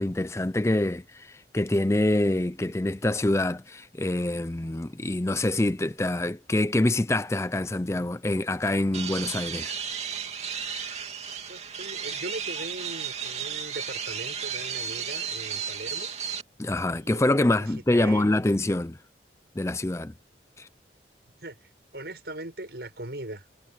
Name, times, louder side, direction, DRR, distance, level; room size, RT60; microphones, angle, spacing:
voice 1, 0.0-9.7 16.6-19.0 19.6-20.1 20.6-20.7, left 1 dB, 15° left, 0.5 m, -25 dB
sound 1, 8.9-16.4, right 7 dB, 35° right, 2.8 m, -34 dB
voice 2, 11.5-16.1 16.9-18.3 21.4-23.5, right 1 dB, 65° right, 5.9 m, -40 dB
head